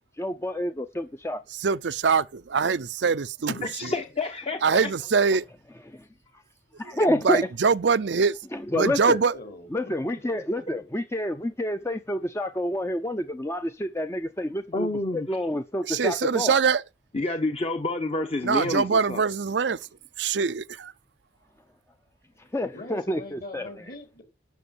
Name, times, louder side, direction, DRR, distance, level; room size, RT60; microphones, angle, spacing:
voice 1, 0.2-1.4 5.9-6.0 6.8-7.5 8.5-9.2 9.7-16.6 22.5-23.7, left 1 dB, 15° left, 0.6 m, -28 dB
voice 2, 1.5-3.9 4.6-5.5 6.9-8.4 8.7-9.4 15.9-16.8 18.4-19.8 20.2-20.9, right 5 dB, 75° right, 0.6 m, -24 dB
voice 3, 3.5-4.9 14.7-15.4 17.1-19.2, left 2 dB, 35° left, 1.1 m, -29 dB
voice 4, 9.3-10.6 22.7-24.2, left 2 dB, 55° left, 4.8 m, -43 dB
12.5 x 6.1 x 8.7 m
head